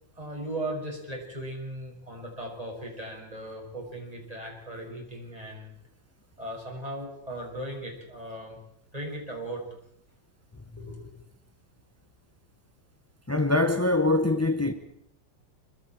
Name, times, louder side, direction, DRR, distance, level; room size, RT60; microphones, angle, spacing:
voice 1, 0.2-5.7 6.4-8.6 8.9-9.6 10.8-11.0, right 1 dB, 20° right, 6.3 m, -37 dB
voice 2, 13.3-14.7, left 2 dB, 20° left, 0.4 m, -23 dB
26.0 x 23.5 x 4.5 m
omnidirectional pair, 2.0 m